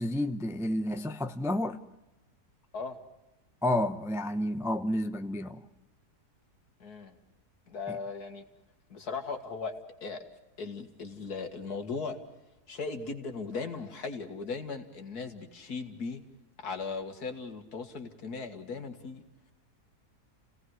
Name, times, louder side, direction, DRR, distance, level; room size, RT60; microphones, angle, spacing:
voice 1, 0.0-1.8 3.6-5.7 7.9-8.0, left 1 dB, 5° right, 8 dB, 0.5 m, -30 dB
voice 2, 6.8-7.1 7.7-8.4 8.9-9.7 10.0-10.2 10.6-12.2 12.7-16.2 16.6-19.2, left 4 dB, 75° left, 5 dB, 2.4 m, -38 dB
29.5 x 18.0 x 6.3 m, 0.97 s
omnidirectional pair, 1.7 m